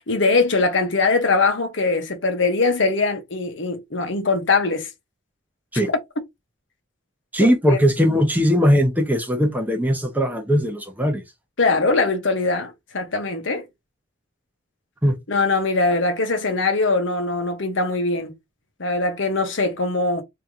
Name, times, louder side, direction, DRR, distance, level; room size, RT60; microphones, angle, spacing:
voice 1, 0.0-4.9 7.7-7.8 11.6-13.7 15.3-18.3 18.8-20.2, left 3 dB, 70° left, 1.0 m, -21 dB
voice 2, 7.3-11.2 15.0-15.1, equal, 10° right, 0.7 m, -19 dB
3.1 x 2.8 x 3.6 m
head